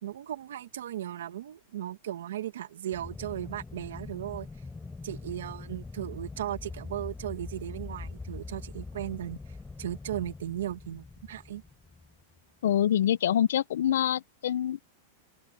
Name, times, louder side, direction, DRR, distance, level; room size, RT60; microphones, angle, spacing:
voice 1, 0.0-4.5 5.0-9.4 9.8-11.6, right 12 dB, 85° right, 1.8 m, -36 dB
Aircraft, 2.9-12.4, left 3 dB, 5° left, 4.5 m, -43 dB
voice 2, 12.6-14.8, left 10 dB, 80° left, 0.6 m, -25 dB
supercardioid pair, 170°, 0 cm